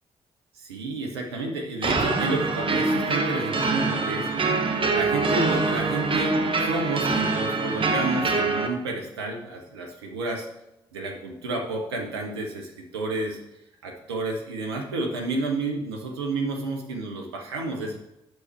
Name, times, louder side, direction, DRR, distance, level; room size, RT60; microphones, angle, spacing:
voice 1, 0.6-4.3 4.9-10.5 10.9-13.4 13.8-18.0, right 2 dB, 90° right, 1 dB, 1.1 m, -30 dB
sound 1, 1.8-8.7, right 3 dB, 40° right, 1.3 m, -24 dB
7.8 x 6.6 x 4.4 m, 0.89 s
hypercardioid pair, 40°, 13 cm